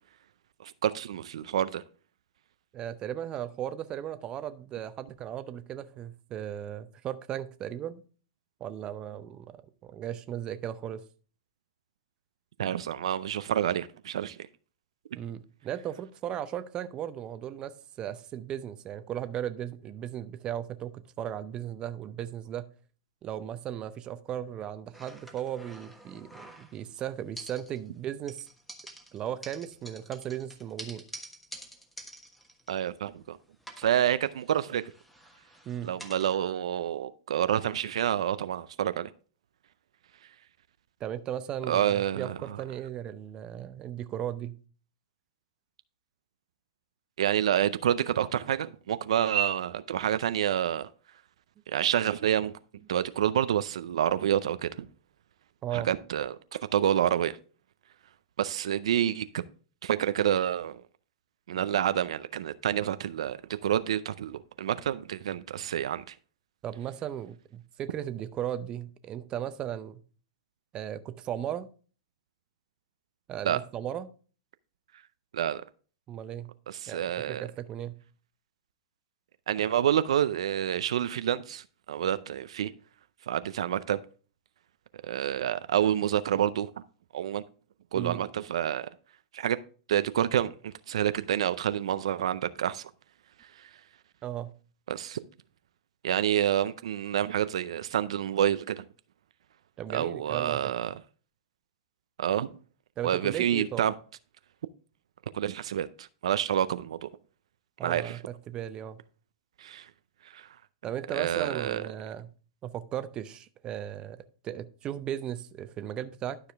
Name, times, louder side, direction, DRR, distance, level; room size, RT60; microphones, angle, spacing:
voice 1, 0.6-1.8 12.6-14.4 32.7-33.4 33.8-34.8 35.8-39.1 41.7-42.4 47.2-50.9 51.7-52.5 52.9-54.9 55.7-57.4 58.4-59.4 59.8-60.8 61.5-63.4 63.6-66.1 73.4-73.6 75.3-75.6 76.7-77.4 79.5-82.7 83.3-84.0 85.0-86.7 87.1-87.4 87.9-88.9 89.3-89.6 89.9-92.9 93.6-93.7 94.9-95.2 96.0-98.8 99.9-101.0 102.2-102.5 103.0-103.9 105.3-107.1 107.8-108.2 109.6-109.9 110.3-110.5 111.1-111.8, right 10 dB, 80° right, 0.4 m, -28 dB
voice 2, 2.7-8.0 8.6-11.0 15.1-22.7 23.2-28.5 29.1-31.0 35.6-35.9 41.0-44.6 55.6-55.9 66.6-70.0 70.7-71.7 73.3-74.1 76.1-76.5 76.9-78.0 87.9-88.3 94.2-94.5 99.8-100.7 103.0-103.9 107.8-109.0 110.8-112.3 112.6-114.2 114.4-116.4, right 10 dB, 30° right, 0.7 m, -36 dB
sound 1, 24.9-27.0 27.4-28.0 28.3-33.3 33.6-36.3, right 1 dB, 5° left, 1.3 m, -48 dB
12.0 x 4.9 x 3.4 m
hypercardioid pair, 130°, 3 cm